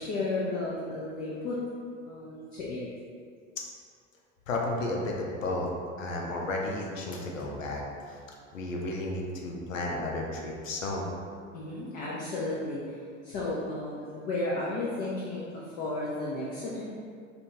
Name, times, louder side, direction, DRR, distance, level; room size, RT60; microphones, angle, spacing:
voice 1, 0.0-1.6 2.1-2.8 11.5-16.8, left 2 dB, 30° left, -6 dB, 0.4 m, -33 dB
voice 2, 4.5-5.7 6.0-8.2 8.5-11.1, left 2 dB, 75° left, -1 dB, 0.6 m, -33 dB
2.8 x 2.2 x 2.8 m, 2.2 s
figure-of-eight pair, 80°, 39 cm